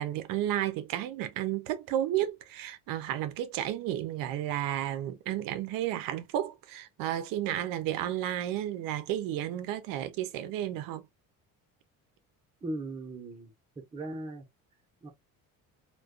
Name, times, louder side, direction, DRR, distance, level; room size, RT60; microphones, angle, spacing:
voice 1, 0.0-11.0, right 12 dB, 80° right, 0.5 m, -32 dB
voice 2, 12.6-13.5 13.9-14.4 15.0-15.1, right 2 dB, 15° right, 0.6 m, -38 dB
2.4 x 2.2 x 2.4 m
cardioid pair, 170°, 33 cm